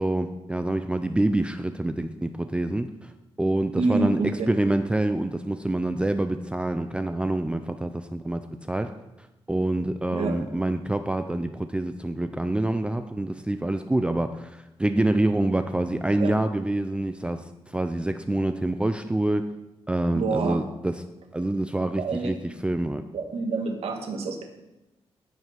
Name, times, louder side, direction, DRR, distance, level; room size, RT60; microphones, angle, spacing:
voice 1, 0.0-3.1 3.4-8.4 8.7-9.0 9.5-19.5 19.9-21.1 21.3-22.4 22.6-23.1, right 1 dB, 10° right, 8 dB, 0.5 m, -26 dB
voice 2, 3.8-4.3 10.1-10.4 16.2-16.3 20.1-20.6 22.0-22.4 23.1-24.4, right 3 dB, 80° right, 3 dB, 1.8 m, -27 dB
14.0 x 5.7 x 6.0 m, 0.98 s
cardioid pair, 110°, 10 cm